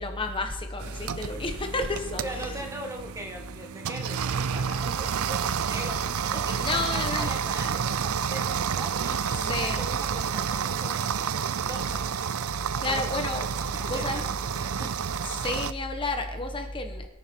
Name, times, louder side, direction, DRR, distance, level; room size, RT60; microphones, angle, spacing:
voice 1, 0.0-2.6 6.5-7.4 9.5-9.8 12.8-13.5 13.9-14.2 15.3-17.1, left 2 dB, 25° left, 5 dB, 1.3 m, -31 dB
sound 1, 0.8-15.7, right 7 dB, 75° right, 0.5 m, -30 dB
voice 2, 1.9-11.2 11.7-12.1 12.9-13.0 13.7-14.2 14.6-14.9, right 1 dB, 15° right, 3 dB, 1.6 m, -40 dB
23.0 x 9.2 x 4.6 m, 0.93 s
head